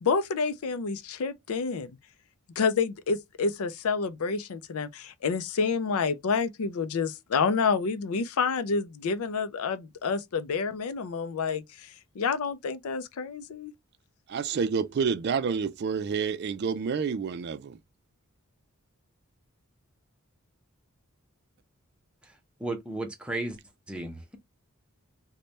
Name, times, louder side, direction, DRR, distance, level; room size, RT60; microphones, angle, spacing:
voice 1, 0.0-1.9 2.6-13.7, left 5 dB, 75° left, 0.4 m, -28 dB
voice 2, 14.3-17.8, right 6 dB, 50° right, 0.3 m, -29 dB
voice 3, 22.2-23.6 23.9-24.2, right 2 dB, 5° right, 0.7 m, -34 dB
3.2 x 2.2 x 4.0 m
head